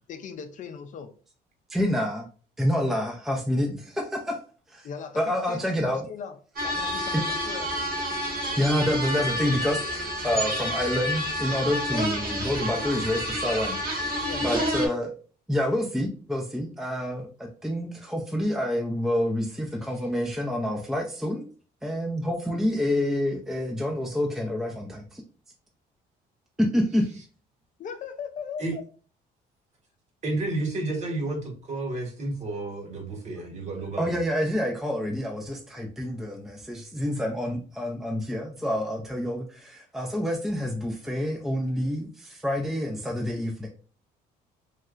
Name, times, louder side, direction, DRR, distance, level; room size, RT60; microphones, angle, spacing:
voice 1, 0.1-1.1 4.8-6.4 6.6-7.7 10.2-10.5 11.9-12.1 14.2-14.9 27.8-28.8, left 6 dB, 50° left, 7 dB, 0.5 m, -39 dB
voice 2, 1.7-2.3 2.6-4.4 4.7-4.9 5.2-6.1 7.1-7.2 8.6-15.1 15.5-21.4 21.8-25.2 26.6-27.1 34.0-43.7, left 1 dB, ahead, 1 dB, 0.5 m, -28 dB
sound 1, 6.6-14.9, equal, 60° right, 1.3 m, -29 dB
voice 3, 30.2-34.2, right 2 dB, 45° right, 3 dB, 1.1 m, -31 dB
3.2 x 2.7 x 2.4 m, 0.39 s
cardioid pair, 110°, 17 cm